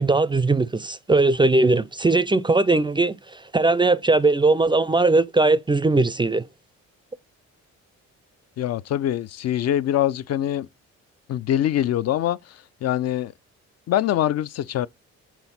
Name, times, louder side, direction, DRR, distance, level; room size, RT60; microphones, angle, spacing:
voice 1, 0.0-6.4, right 3 dB, 15° right, 0.4 m, -19 dB
voice 2, 8.6-10.7 11.3-12.4 12.8-13.3 13.9-14.9, left 11 dB, 55° left, 0.5 m, -23 dB
6.1 x 3.9 x 4.1 m
cardioid pair, 90°, 30 cm